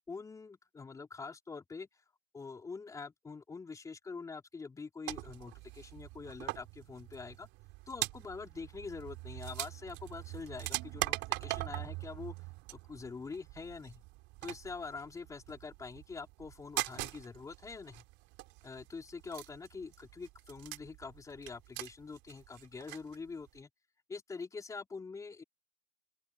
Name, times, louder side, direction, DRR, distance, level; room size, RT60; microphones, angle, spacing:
voice 1, 0.1-2.0 2.3-7.5 7.9-12.3 12.7-14.0 14.4-18.0 18.6-23.7 24.1-25.4, left 4 dB, 10° left, 3.7 m, -45 dB
sound 1, 5.1-23.2 23.5-23.6, right 23 dB, 30° right, 3.6 m, -42 dB
open air
figure-of-eight pair, 110°, 37 cm